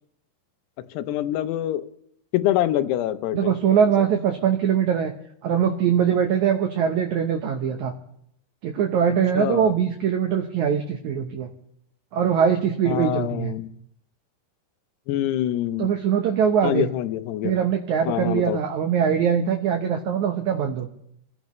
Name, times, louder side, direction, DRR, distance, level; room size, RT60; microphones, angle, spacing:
voice 1, 0.9-1.9 2.3-3.5 9.3-9.8 12.9-13.7 15.1-15.9 16.6-17.5 18.0-18.6, left 12 dB, 80° left, 11 dB, 2.8 m, -25 dB
voice 2, 3.3-5.1 5.4-7.9 8.6-11.5 12.1-13.5 15.8-16.9 17.4-20.9, right 8 dB, 70° right, 4 dB, 1.8 m, -22 dB
27.5 x 16.0 x 3.2 m, 0.70 s
omnidirectional pair, 4.8 m